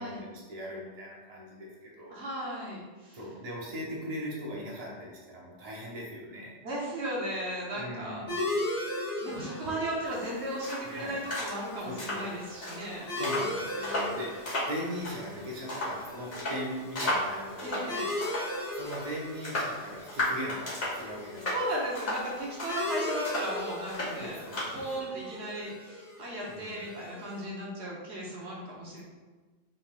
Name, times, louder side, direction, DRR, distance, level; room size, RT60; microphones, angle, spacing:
voice 1, 0.0-2.2 3.1-6.5 7.7-8.4 10.8-11.2 11.8-12.4 13.2-17.9 18.7-21.6 24.0-24.6 25.0-25.1 26.5-26.8, equal, 35° right, -4 dB, 0.9 m, -40 dB
voice 2, 2.1-3.2 6.6-8.3 8.7-8.8 9.2-13.1 17.6-18.1 21.5-24.4 24.7-29.0, right 1 dB, 65° right, -3 dB, 1.1 m, -36 dB
sound 1, 8.3-27.4, left 1 dB, 70° left, 2.0 m, -38 dB
sound 2, 10.1-25.0, left 1 dB, 55° left, 1.5 m, -36 dB
5.6 x 3.5 x 2.2 m, 1.3 s
omnidirectional pair, 1.2 m